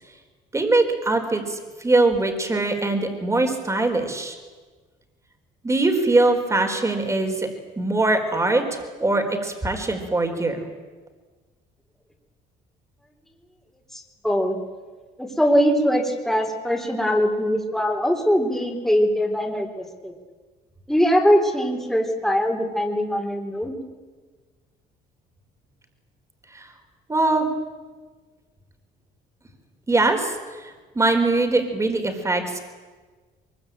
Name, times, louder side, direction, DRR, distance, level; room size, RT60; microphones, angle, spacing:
voice 1, 0.5-4.4 5.6-7.5 7.8-10.6 26.5-26.7 27.1-27.5 29.9-32.6, right 2 dB, 15° right, 5 dB, 4.2 m, -22 dB
voice 2, 13.9-14.6 15.2-20.1 20.9-23.8, equal, ahead, 2 dB, 3.8 m, -22 dB
23.0 x 22.0 x 9.0 m, 1.4 s
cardioid pair, 110°, 17 cm